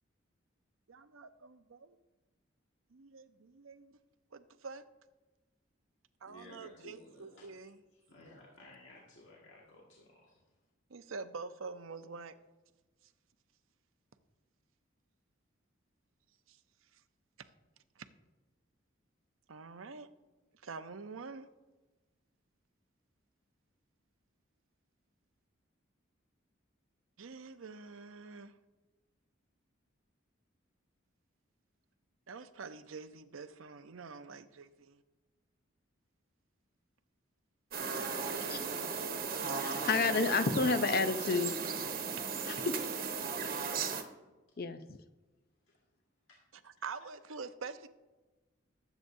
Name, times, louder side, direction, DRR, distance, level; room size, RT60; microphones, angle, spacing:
voice 1, 0.9-2.0 2.9-3.9 4.3-4.8 6.2-7.8 10.9-12.3 16.5-16.6 17.4-17.5 18.0-18.1 19.5-20.1 20.6-21.5 27.2-28.5 32.3-35.0 46.6-47.9, right 4 dB, 85° right, 10 dB, 0.7 m, -46 dB
voice 2, 6.3-10.4 38.0-39.3 43.4-43.8 45.7-45.8 46.3-46.4, left 1 dB, 70° left, -4 dB, 1.8 m, -56 dB
sound 1, 37.7-44.0, right 5 dB, 45° right, 1.1 m, -36 dB
voice 3, 39.6-41.5 42.5-42.7 44.6-44.8, left 4 dB, 50° left, 10 dB, 0.6 m, -30 dB
20.0 x 8.1 x 2.7 m, 1.2 s
head